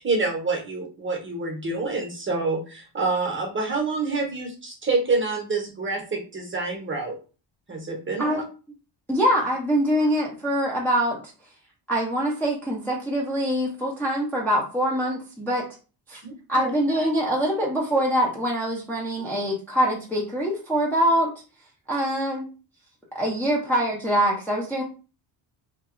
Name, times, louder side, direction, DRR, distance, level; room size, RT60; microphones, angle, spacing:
voice 1, 0.0-7.2 7.7-8.4 16.2-16.7, right 3 dB, 25° right, 1 dB, 0.8 m, -27 dB
voice 2, 9.1-11.2 11.9-15.7 16.1-16.2 16.5-21.3 21.9-22.5 23.1-24.8, equal, 5° left, -4 dB, 0.5 m, -24 dB
2.8 x 2.3 x 2.4 m, 0.35 s
cardioid pair, 100°, 49 cm